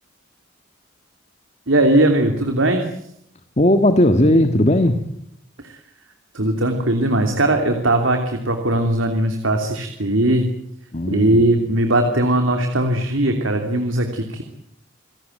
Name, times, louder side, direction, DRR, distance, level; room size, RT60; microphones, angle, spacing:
voice 1, 1.7-2.9 5.6-5.8 6.3-10.5 11.1-14.4, right 1 dB, 85° right, 5 dB, 3.0 m, -19 dB
voice 2, 3.6-5.0 10.9-11.5, left 1 dB, 35° left, 8 dB, 1.6 m, -16 dB
28.0 x 17.5 x 9.2 m, 0.77 s
head